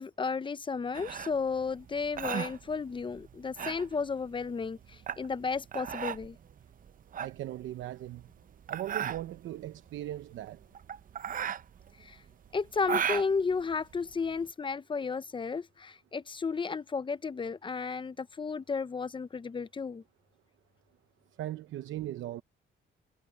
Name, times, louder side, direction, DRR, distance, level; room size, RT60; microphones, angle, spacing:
voice 1, 0.0-6.4 12.0-12.2 12.5-20.0, left 5 dB, 25° left, 0.7 m, -33 dB
sound 1, 0.9-14.5, right 8 dB, 45° right, 0.6 m, -37 dB
voice 2, 7.2-8.2 8.7-10.6 21.4-22.4, right 13 dB, 80° right, 0.9 m, -38 dB
cardioid pair, 90°, 20 cm